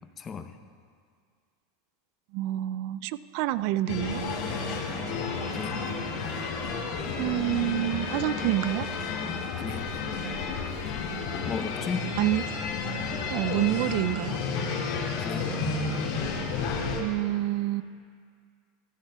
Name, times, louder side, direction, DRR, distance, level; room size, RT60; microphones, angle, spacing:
voice 1, 0.2-0.6 5.5-5.9 9.6-9.9 11.4-12.1 15.2-15.6, left 6 dB, 25° left, 8 dB, 0.7 m, -34 dB
voice 2, 2.3-4.2 7.2-8.9 12.2-12.4 13.3-14.4 17.0-17.8, right 15 dB, 60° right, 16 dB, 0.3 m, -27 dB
sound 1, 3.9-17.0, left 4 dB, 65° left, 1.8 m, -31 dB
15.0 x 14.5 x 2.3 m, 2.1 s
supercardioid pair, 130°, 0 cm